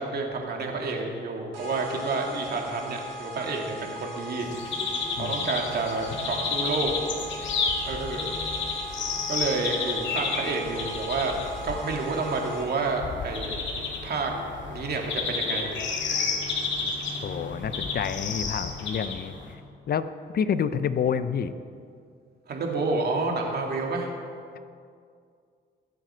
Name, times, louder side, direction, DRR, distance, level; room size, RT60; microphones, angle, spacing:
voice 1, 0.0-4.5 5.2-7.0 7.9-8.3 9.3-11.4 11.6-13.6 14.0-14.3 14.7-15.7 22.5-24.1, right 3 dB, 55° right, 1 dB, 2.5 m, -29 dB
sound 1, 1.5-12.9, equal, 80° right, 3.9 m, -40 dB
sound 2, 4.4-19.5, left 4 dB, 70° left, 2.1 m, -31 dB
voice 2, 5.2-5.5 17.2-19.3 19.9-20.1 20.3-21.5, left 7 dB, 50° left, 12 dB, 0.7 m, -28 dB
21.5 x 7.8 x 4.5 m, 2.3 s
cardioid pair, 90°, 20 cm